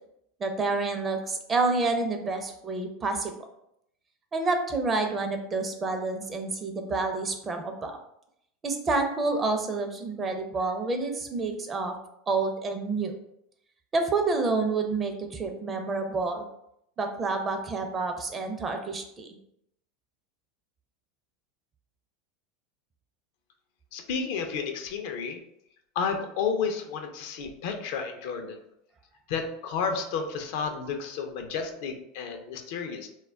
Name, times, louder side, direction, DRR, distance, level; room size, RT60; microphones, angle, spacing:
voice 1, 0.4-3.3 4.3-7.9 8.6-11.9 12.3-13.2 13.9-16.5 17.0-19.3, right 3 dB, 25° right, 5 dB, 0.5 m, -28 dB
voice 2, 23.9-25.4 26.0-28.6 29.3-33.1, left 5 dB, 65° left, 5 dB, 0.4 m, -31 dB
2.2 x 2.1 x 3.4 m, 0.77 s
hypercardioid pair, 100°, 0 cm